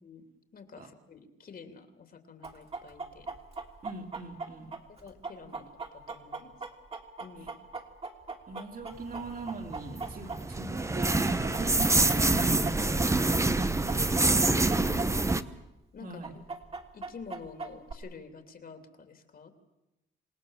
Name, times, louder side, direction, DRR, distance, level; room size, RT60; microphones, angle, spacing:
voice 1, 0.0-3.3 5.0-6.5 7.2-7.6 14.4-15.2 15.9-16.4 16.9-19.5, left 5 dB, 50° left, 6 dB, 3.0 m, -48 dB
Chicken rooster, 2.4-10.7 11.0-15.4 15.6-15.7 16.2-17.9, right 4 dB, 30° right, 3.1 m, -39 dB
voice 2, 3.8-4.7 5.5-5.6 8.5-15.3 16.0-16.3, right 3 dB, 45° right, 3 dB, 3.7 m, -41 dB
sound 1, 9.5-15.4, right 2 dB, 15° right, 1.0 m, -26 dB
28.0 x 18.0 x 7.5 m, 0.95 s
cardioid pair, 90°, 20 cm